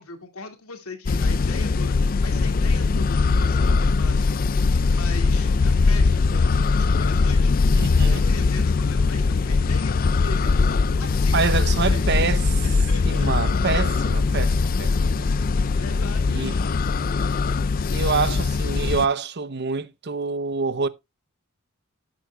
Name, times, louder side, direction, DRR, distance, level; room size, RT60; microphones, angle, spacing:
voice 1, 0.0-7.6 8.1-12.1 12.6-13.5 14.1-14.2 15.8-16.9, left 3 dB, 85° left, 2.2 m, -40 dB
sound 1, 1.1-19.1, left 4 dB, 40° left, 0.4 m, -21 dB
voice 2, 7.7-8.2 11.3-12.7 13.1-14.9 15.2-15.3 16.3-16.6 17.9-20.9, right 5 dB, 50° right, 0.6 m, -26 dB
15.5 x 7.6 x 2.2 m
head